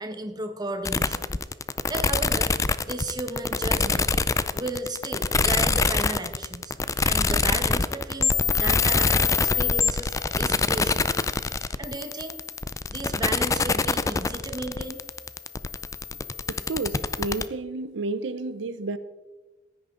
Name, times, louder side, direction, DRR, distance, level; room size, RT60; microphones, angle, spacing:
voice 1, 0.0-1.3 1.9-2.5 2.9-4.1 4.5-6.8 7.0-11.1 11.8-12.4 12.9-15.0, right 2 dB, 20° right, 6 dB, 1.2 m, -34 dB
sound 1, 0.8-17.4, left 4 dB, 15° left, 0.4 m, -24 dB
voice 2, 16.5-19.0, right 3 dB, 85° right, 13 dB, 0.6 m, -31 dB
15.5 x 9.2 x 3.8 m, 1.2 s
head